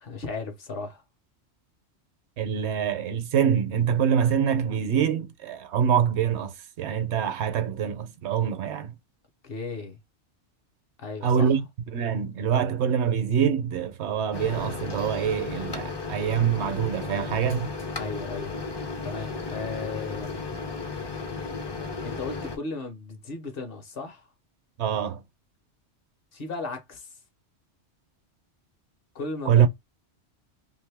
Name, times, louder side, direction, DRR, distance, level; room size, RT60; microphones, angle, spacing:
voice 1, 0.0-1.0 9.4-10.0 11.0-11.6 18.0-18.6 19.0-20.3 22.0-24.2 26.3-27.1 29.1-29.7, left 3 dB, 55° left, 0.9 m, -35 dB
voice 2, 2.4-6.5 6.8-8.9 11.2-11.6 11.9-17.7 24.8-25.2 29.5-29.7, right 8 dB, 75° right, 0.9 m, -25 dB
Microwave oven, 14.3-22.6, left 4 dB, 35° left, 0.4 m, -34 dB
2.7 x 2.6 x 3.3 m
omnidirectional pair, 1.2 m